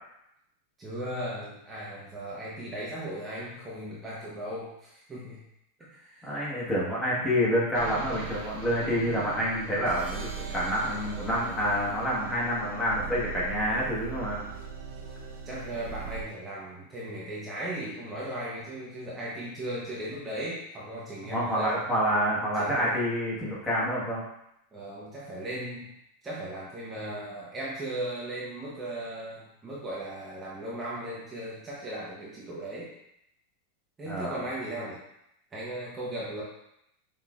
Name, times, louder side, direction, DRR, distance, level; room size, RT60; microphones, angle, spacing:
voice 1, 0.8-5.4 5.8-6.3 15.4-21.8 22.5-22.9 24.7-25.9 26.2-32.9 34.0-35.0 35.5-36.4, right 1 dB, 15° right, -7 dB, 0.8 m, -37 dB
voice 2, 6.2-14.4 21.2-24.2 34.1-34.4, equal, 10° left, -6 dB, 1.2 m, -28 dB
sound 1, 7.7-16.2, right 6 dB, 65° right, 1.1 m, -39 dB
5.6 x 3.2 x 2.4 m, 0.80 s
supercardioid pair, 160°, 0 cm